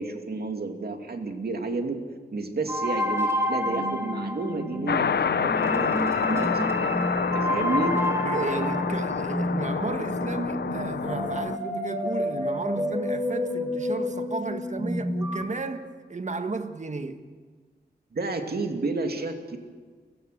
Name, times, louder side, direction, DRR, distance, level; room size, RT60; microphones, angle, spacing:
voice 1, 0.0-2.0 2.3-6.9 7.3-7.9 18.1-19.6, right 3 dB, 65° right, 2.4 m, -31 dB
sound 1, 2.7-15.4, equal, 15° right, 4.2 m, -29 dB
sound 2, 4.9-11.6, left 6 dB, 75° left, 0.7 m, -28 dB
voice 2, 8.2-17.2, right 3 dB, 45° right, 1.6 m, -33 dB
30.0 x 17.0 x 6.7 m
wide cardioid pair, 75°, 17 cm